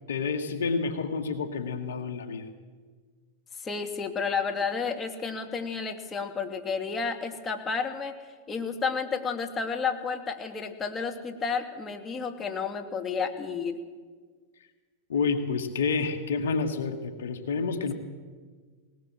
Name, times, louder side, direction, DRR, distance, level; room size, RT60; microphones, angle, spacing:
voice 1, 0.1-2.5 15.1-17.9, left 4 dB, 80° left, 7 dB, 1.9 m, -29 dB
voice 2, 3.6-8.2 8.5-13.8, left 5 dB, 20° left, 4 dB, 2.4 m, -31 dB
20.0 x 19.5 x 7.6 m, 1.5 s
hypercardioid pair, 105°, 0 cm